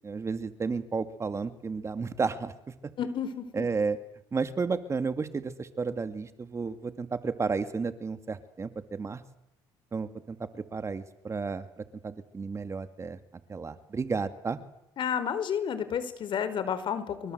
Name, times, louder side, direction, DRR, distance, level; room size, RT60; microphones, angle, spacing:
voice 1, 0.0-2.5 3.6-4.0 4.3-9.2 9.9-13.2 13.5-14.6, right 4 dB, 30° right, 10 dB, 2.2 m, -32 dB
voice 2, 3.0-3.7 15.0-17.3, left 8 dB, 55° left, 12 dB, 4.6 m, -31 dB
28.5 x 25.0 x 8.0 m, 0.81 s
supercardioid pair, 90°, 10 cm